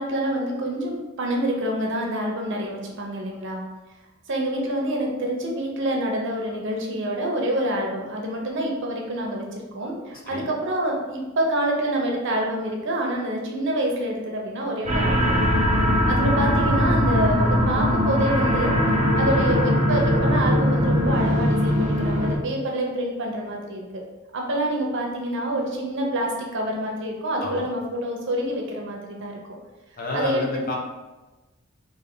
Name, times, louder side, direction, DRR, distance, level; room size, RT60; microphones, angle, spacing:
voice 1, 0.0-3.6 4.3-9.4 9.7-15.5 16.1-18.7 19.1-24.0 24.3-29.4 30.1-30.7, right 1 dB, 60° right, 0 dB, 0.8 m, -27 dB
voice 2, 10.1-10.5 19.3-19.5 27.4-27.7 30.0-30.7, left 2 dB, 45° left, -1 dB, 0.7 m, -31 dB
sound 1, 14.9-22.4, equal, 35° right, 1.0 m, -21 dB
3.4 x 2.6 x 3.8 m, 1.1 s
head